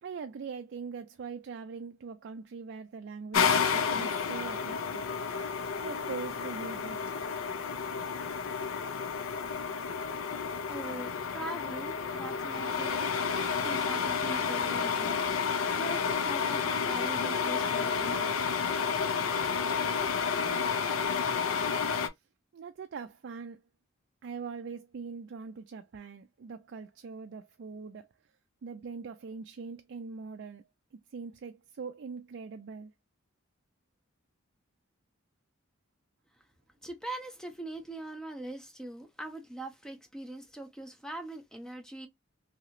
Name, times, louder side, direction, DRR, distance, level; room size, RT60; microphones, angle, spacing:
voice 1, 0.0-5.1 5.8-7.0 22.5-23.6 24.2-28.1 28.6-32.9, right 5 dB, 55° right, 0.4 m, -42 dB
sound 1, 3.3-22.1, left 6 dB, 75° left, 0.5 m, -31 dB
voice 2, 10.3-18.4 36.8-42.1, right 1 dB, 5° left, 0.7 m, -42 dB
3.0 x 2.8 x 2.5 m
head